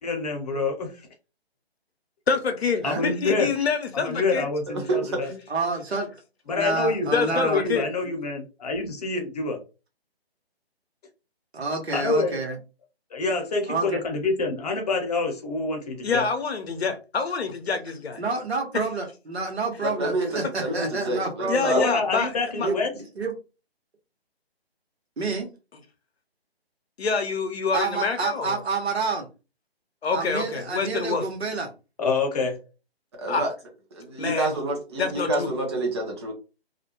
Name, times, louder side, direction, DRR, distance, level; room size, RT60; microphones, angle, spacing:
voice 1, 0.0-1.1 2.8-3.5 3.9-5.3 6.5-9.6 11.9-12.4 13.1-16.3 21.8-22.9 32.0-32.6, left 3 dB, 40° left, 0.8 m, -26 dB
voice 2, 2.3-4.5 7.1-7.9 16.0-18.2 18.7-18.8 21.5-22.3 22.6-22.7 27.0-28.6 30.0-31.3 33.3-33.4 34.2-34.5 35.0-35.5, left 5 dB, 75° left, 0.7 m, -26 dB
voice 3, 4.7-5.4 19.8-21.8 33.2-33.5 33.9-36.3, right 2 dB, 25° right, 0.7 m, -28 dB
voice 4, 5.5-6.1 6.5-7.6 8.0-8.1 11.5-12.6 13.7-14.0 18.2-21.7 22.6-23.3 25.2-25.5 27.7-29.3 30.1-31.7 34.2-34.4, right 4 dB, 80° right, 1.1 m, -29 dB
2.5 x 2.1 x 2.9 m
figure-of-eight pair, 150°, 32 cm